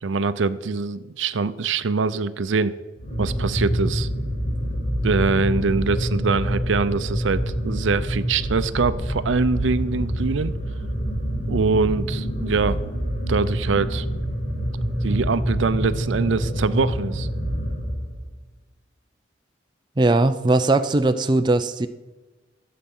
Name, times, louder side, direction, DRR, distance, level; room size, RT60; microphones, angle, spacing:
voice 1, 0.0-2.7 3.2-4.1 5.0-10.5 11.5-12.8 13.3-14.1 15.0-17.3, right 4 dB, 80° right, 15 dB, 0.6 m, -23 dB
sound 1, 3.0-18.3, equal, 35° left, 2.1 m, -26 dB
voice 2, 20.0-21.9, right 2 dB, 25° right, 9 dB, 0.4 m, -19 dB
14.5 x 7.6 x 5.4 m, 1.2 s
head